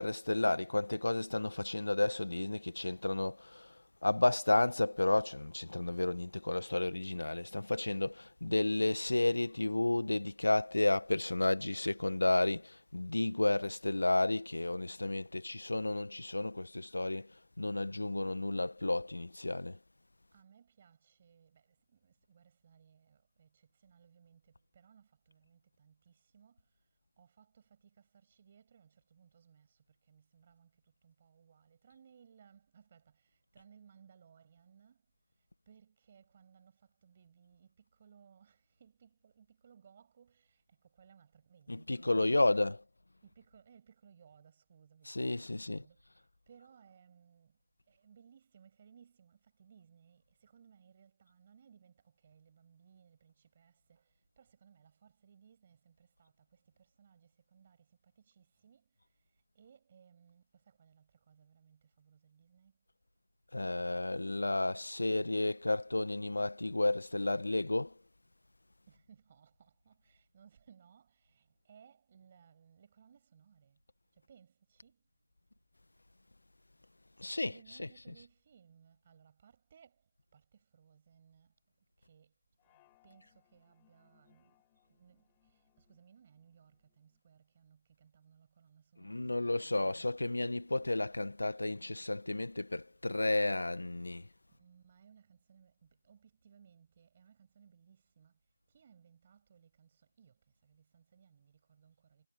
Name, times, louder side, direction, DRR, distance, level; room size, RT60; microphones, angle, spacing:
voice 1, 0.0-19.8 41.7-42.8 45.0-45.8 63.5-67.9 77.2-78.1 89.0-94.3, left 2 dB, 55° left, 1.8 m, -32 dB
voice 2, 20.3-42.7 43.2-62.8 68.9-73.8 74.1-75.1 77.5-81.6 82.0-90.2 91.5-91.6 94.5-102.3, right 7 dB, 15° right, 7.9 m, -64 dB
sound 1, 82.6-87.2, left 20 dB, 5° left, 5.7 m, -72 dB
figure-of-eight pair, 175°, 0 cm